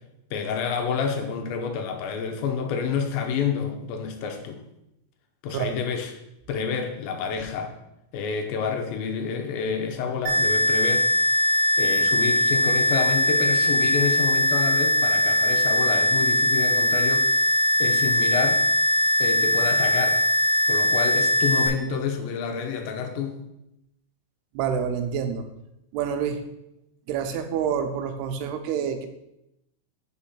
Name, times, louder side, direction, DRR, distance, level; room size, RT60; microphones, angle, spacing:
voice 1, 0.3-4.6 5.4-6.1 6.5-7.7 8.1-11.1 11.8-17.5 17.8-18.6 19.2-20.2 20.7-23.4, left 6 dB, 75° left, 4 dB, 2.4 m, -28 dB
sound 1, 10.3-21.7, left 1 dB, 70° right, 2.2 m, -21 dB
voice 2, 24.5-25.4 25.9-26.4 27.1-29.1, right 7 dB, 90° right, 7 dB, 2.7 m, -27 dB
5.3 x 5.1 x 5.6 m, 0.85 s
omnidirectional pair, 4.6 m